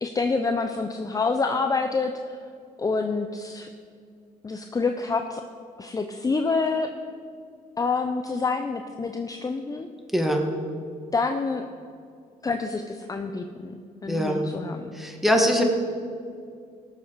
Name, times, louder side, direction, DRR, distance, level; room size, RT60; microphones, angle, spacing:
voice 1, 0.0-2.4 2.8-3.7 4.4-5.4 5.8-6.9 7.8-9.9 11.1-11.7 12.4-14.9, left 4 dB, 25° left, 6 dB, 0.6 m, -27 dB
voice 2, 10.1-10.5 14.1-14.5 14.9-15.6, equal, ahead, 2 dB, 1.8 m, -22 dB
18.0 x 7.2 x 4.7 m, 2.3 s
cardioid pair, 90°, 15 cm